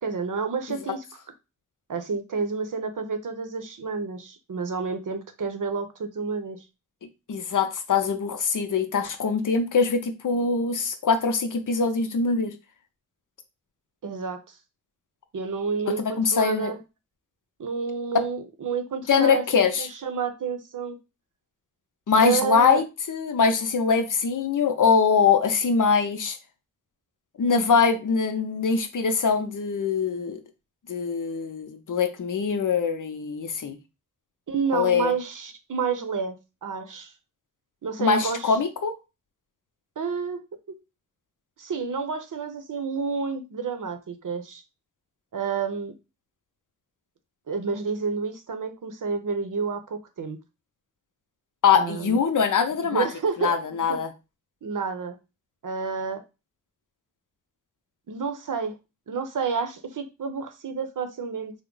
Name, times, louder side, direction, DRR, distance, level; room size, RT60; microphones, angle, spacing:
voice 1, 0.0-1.0 1.9-6.6 14.0-14.4 15.3-16.8 17.6-21.0 22.2-22.8 34.5-36.4 36.6-37.1 37.8-38.5 40.0-40.4 41.6-44.6 45.3-45.9 47.5-50.4 51.7-52.2 52.9-54.0 54.6-55.2 55.6-56.2 58.1-58.7 59.1-61.5, right 5 dB, 70° right, 0.7 m, -30 dB
voice 2, 7.3-12.5 15.9-16.7 19.1-19.9 22.1-26.4 27.4-30.4 30.9-33.8 34.7-35.1 38.0-38.9 51.6-53.1 53.4-54.1, left 5 dB, 70° left, 0.6 m, -23 dB
3.6 x 2.1 x 3.8 m
wide cardioid pair, 60°, 33 cm